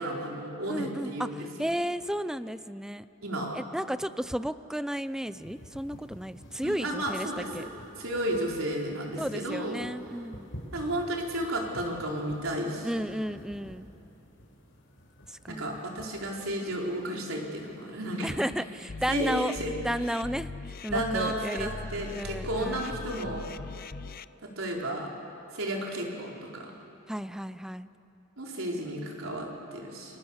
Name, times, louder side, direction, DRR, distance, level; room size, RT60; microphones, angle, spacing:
voice 1, 0.0-1.7 3.2-3.6 6.6-7.7 8.0-9.8 10.7-12.9 15.5-18.4 19.1-19.7 20.0-20.1 20.9-23.5 24.4-25.1 25.5-26.8 28.4-30.2, right 1 dB, 80° right, -1 dB, 4.5 m, -33 dB
voice 2, 0.7-3.0 3.5-7.3 7.5-7.6 9.2-10.5 12.8-13.9 15.3-15.7 18.2-19.5 19.8-20.5 20.8-21.7 22.1-22.8 27.1-27.9, equal, 5° right, 14 dB, 0.5 m, -33 dB
sound 1, 4.9-18.1, equal, 70° left, 5.5 m, -50 dB
sound 2, 18.9-24.2, left 3 dB, 45° left, 0.5 m, -40 dB
29.5 x 24.0 x 7.3 m, 2.9 s
head